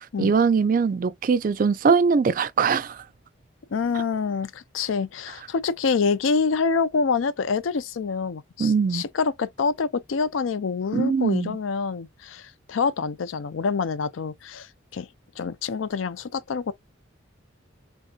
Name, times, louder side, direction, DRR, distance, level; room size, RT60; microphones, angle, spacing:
voice 1, 0.2-3.0 8.6-9.1 10.9-11.6, right 5 dB, 45° right, 0.3 m, -21 dB
voice 2, 3.7-15.1 15.4-16.7, left 5 dB, 90° left, 0.5 m, -26 dB
3.4 x 2.6 x 2.4 m
head